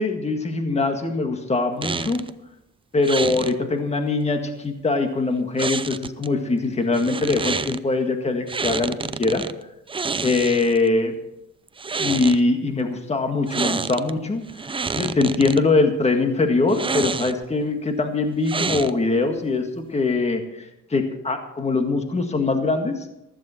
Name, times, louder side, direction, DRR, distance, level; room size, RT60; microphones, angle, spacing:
voice 1, 0.0-2.2 2.9-9.4 10.2-11.1 12.0-14.4 14.9-23.1, left 3 dB, 20° left, 5 dB, 1.8 m, -22 dB
sound 1, 1.8-2.3 3.0-3.5 5.6-6.3 6.9-7.8 8.5-9.5 9.9-10.9 11.7-12.4 13.5-14.1 14.5-15.6 16.7-17.5 18.4-19.2, right 4 dB, 15° right, 0.5 m, -28 dB
15.5 x 14.0 x 4.4 m, 0.85 s
cardioid pair, 115°, 33 cm